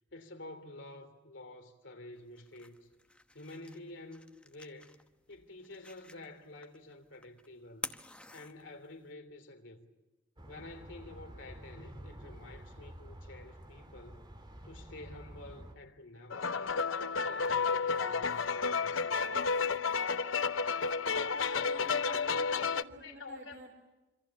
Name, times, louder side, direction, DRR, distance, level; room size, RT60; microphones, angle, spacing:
voice 1, 0.1-2.9 3.3-5.0 5.3-8.0 8.3-9.9 10.5-14.2 14.6-16.8 17.2-19.3 22.1-22.4 23.0-23.7, left 2 dB, 70° left, 3.3 m, -50 dB
sound 1, 2.1-9.1, left 2 dB, 5° left, 1.0 m, -50 dB
sound 2, 10.4-15.7, right 1 dB, 25° right, 2.4 m, -50 dB
sound 3, 16.3-22.8, left 5 dB, 85° left, 0.8 m, -31 dB
voice 2, 21.3-23.7, right 2 dB, 60° right, 4.1 m, -49 dB
26.5 x 25.5 x 7.2 m
head